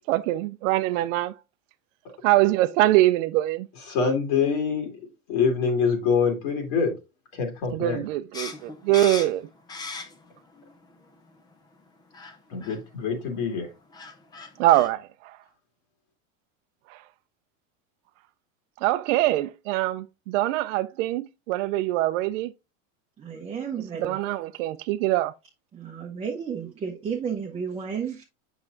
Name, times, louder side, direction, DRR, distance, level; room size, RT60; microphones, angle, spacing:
voice 1, 0.1-1.3 2.2-3.7 7.7-9.5 14.6-15.4 16.9-17.0 18.8-22.5 23.9-25.3, right 15 dB, 65° right, 0.5 m, -23 dB
voice 2, 3.9-5.0 5.3-6.9 7.3-8.0 12.5-13.7, left 5 dB, 55° left, 2.2 m, -25 dB
sound 1, 8.3-10.4 10.8-11.5 12.1-12.3 12.6-12.8 13.6-13.7 13.9-14.9, left 4 dB, 10° left, 0.4 m, -37 dB
voice 3, 23.2-24.2 25.7-28.2, right 7 dB, 15° right, 0.8 m, -32 dB
7.6 x 6.0 x 2.5 m
supercardioid pair, 155°, 41 cm